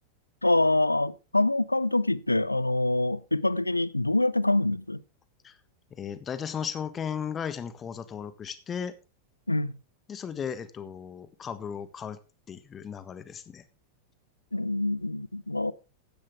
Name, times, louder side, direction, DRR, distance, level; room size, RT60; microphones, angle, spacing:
voice 1, 0.4-5.0 9.5-9.7 14.5-15.7, left 2 dB, 85° left, 0.5 m, -25 dB
voice 2, 5.9-8.9 10.1-12.2 12.5-13.6, left 7 dB, 25° left, 1.4 m, -36 dB
14.5 x 10.5 x 3.6 m
figure-of-eight pair, 90°, 0 cm